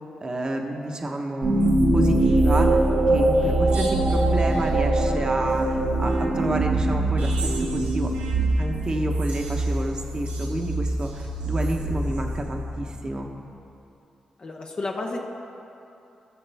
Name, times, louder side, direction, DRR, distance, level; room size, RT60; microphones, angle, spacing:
voice 1, 0.2-2.8 3.1-7.3 7.6-8.1 8.6-13.3, right 1 dB, 35° right, 2 dB, 1.0 m, -30 dB
sound 1, 1.4-13.0, right 1 dB, 85° right, 2.3 m, -23 dB
voice 2, 14.4-15.2, left 2 dB, 45° left, 0 dB, 1.0 m, -31 dB
18.0 x 6.6 x 3.4 m, 2.7 s
cardioid pair, 85°, 2 cm